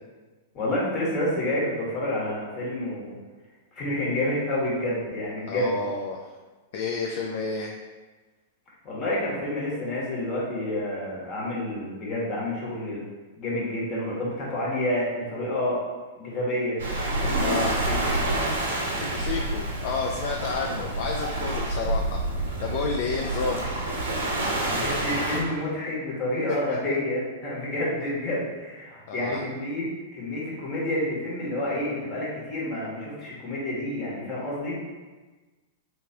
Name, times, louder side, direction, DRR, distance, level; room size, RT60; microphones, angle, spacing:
voice 1, 0.5-3.1 3.7-5.8 8.8-13.0 13.4-15.8 16.2-16.8 17.2-17.6 17.9-18.0 24.7-29.9 30.1-34.8, left 1 dB, 35° left, -6 dB, 1.4 m, -29 dB
voice 2, 5.5-6.3 6.7-7.7 17.4-17.8 18.9-22.2 22.6-23.7 26.7-26.8 29.1-29.4, left 4 dB, 55° left, 0 dB, 0.4 m, -30 dB
Waves surf, 16.8-25.4, right 1 dB, 70° right, 0.7 m, -28 dB
3.4 x 3.0 x 2.8 m, 1.3 s
figure-of-eight pair, 100°, 0 cm